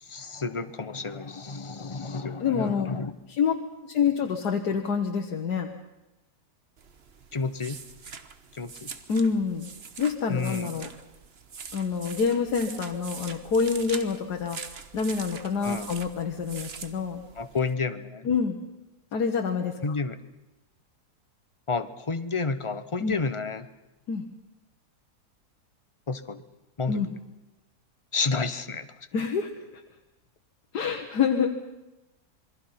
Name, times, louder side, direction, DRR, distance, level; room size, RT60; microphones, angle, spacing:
voice 1, 0.0-3.1 7.3-7.8 8.5-8.9 10.3-10.7 15.6-15.9 17.4-18.3 19.8-20.2 21.7-23.7 26.1-26.4 26.8-27.0 28.1-28.9, left 4 dB, 25° left, 11 dB, 0.9 m, -30 dB
voice 2, 2.4-2.9 3.3-3.5 3.8-5.7 9.1-9.7 10.0-10.9 11.7-17.2 18.3-18.6 19.1-20.0 23.0-23.1 24.1-24.2 26.9-27.1 29.1-29.8 30.7-31.6, left 6 dB, 75° left, 3 dB, 1.9 m, -27 dB
sound 1, 6.8-17.7, right 5 dB, 45° right, 1.3 m, -43 dB
27.5 x 22.0 x 5.8 m, 1.0 s
omnidirectional pair, 1.7 m